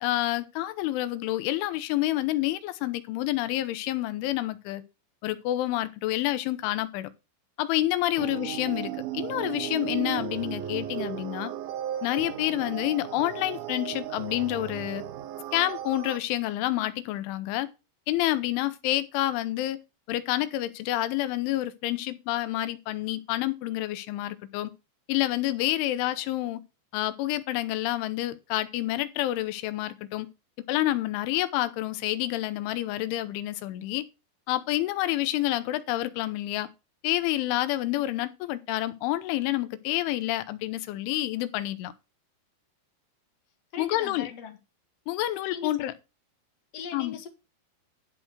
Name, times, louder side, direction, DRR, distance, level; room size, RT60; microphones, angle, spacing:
voice 1, 0.0-4.8 5.2-7.1 7.6-11.5 12.0-15.0 15.5-17.7 18.1-19.8 20.1-24.7 25.1-26.6 26.9-30.3 30.7-34.1 34.5-36.7 37.0-41.9 43.8-44.3 45.1-45.9 46.9-47.2, left 15 dB, 90° left, 3.4 m, -28 dB
sound 1, 8.2-16.2, right 12 dB, 80° right, 2.1 m, -35 dB
voice 2, 43.7-44.6 45.5-45.7 46.7-47.3, left 6 dB, 60° left, 1.7 m, -39 dB
12.0 x 4.5 x 6.5 m
omnidirectional pair, 5.4 m